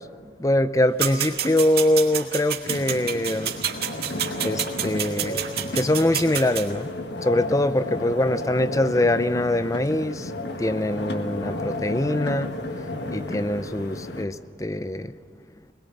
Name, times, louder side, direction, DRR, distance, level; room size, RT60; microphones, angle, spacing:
voice 1, 0.0-3.6 4.4-6.9 7.2-10.3 10.6-12.5 13.1-15.1, left 1 dB, 20° left, 0.5 m, -23 dB
sound 1, 1.0-6.7, right 10 dB, 60° right, 1.9 m, -29 dB
sound 2, 2.6-14.3, left 2 dB, 70° left, 1.6 m, -33 dB
22.0 x 21.0 x 7.2 m
head